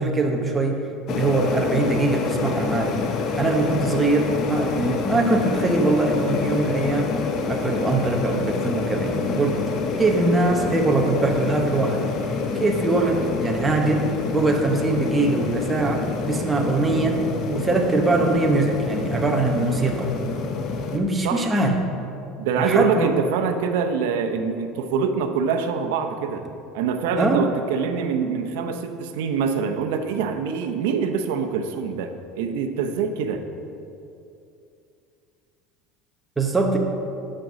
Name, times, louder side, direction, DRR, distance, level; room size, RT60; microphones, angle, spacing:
voice 1, 0.0-3.1 3.4-7.2 7.5-9.6 10.0-12.1 12.5-20.1 20.9-21.9 22.6-23.1 27.2-27.4 36.4-36.8, right 2 dB, 10° right, 1 dB, 0.8 m, -22 dB
sound 1, 1.1-21.0, left 5 dB, 40° left, 0.6 m, -27 dB
voice 2, 22.4-26.4 26.7-33.4, right 6 dB, 85° right, 6 dB, 0.7 m, -24 dB
9.0 x 5.2 x 6.2 m, 2.6 s
cardioid pair, 165°, 0 cm